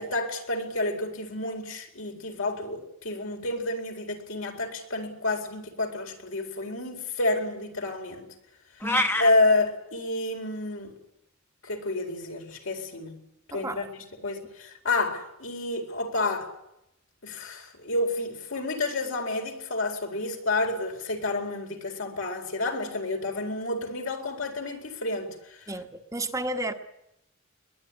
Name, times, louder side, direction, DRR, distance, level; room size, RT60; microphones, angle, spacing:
voice 1, 0.0-8.3 9.2-10.9 11.6-13.2 13.5-16.5 17.2-25.7, left 2 dB, 75° left, 2 dB, 4.4 m, -29 dB
sound 1, 8.8-9.3, left 1 dB, 10° left, 1.1 m, -25 dB
voice 2, 13.5-13.9 25.7-26.7, right 1 dB, 15° right, 5 dB, 1.3 m, -32 dB
22.0 x 20.5 x 9.8 m, 0.85 s
head